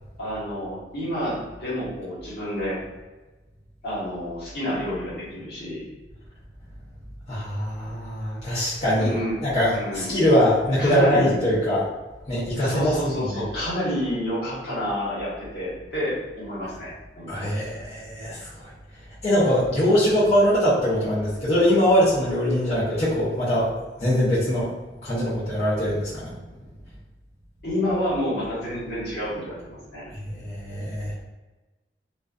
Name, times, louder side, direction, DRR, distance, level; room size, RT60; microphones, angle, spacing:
voice 1, 0.2-2.8 3.8-5.8 9.0-9.3 9.7-10.1 10.8-11.4 12.6-17.5 27.6-30.1, equal, 60° left, -8 dB, 1.1 m, -29 dB
voice 2, 7.3-9.1 9.4-11.8 12.3-13.4 17.3-18.5 19.2-23.7 24.0-24.7 25.0-26.3 30.2-31.1, equal, 35° left, -12 dB, 0.7 m, -22 dB
2.4 x 2.3 x 2.3 m, 1.2 s
head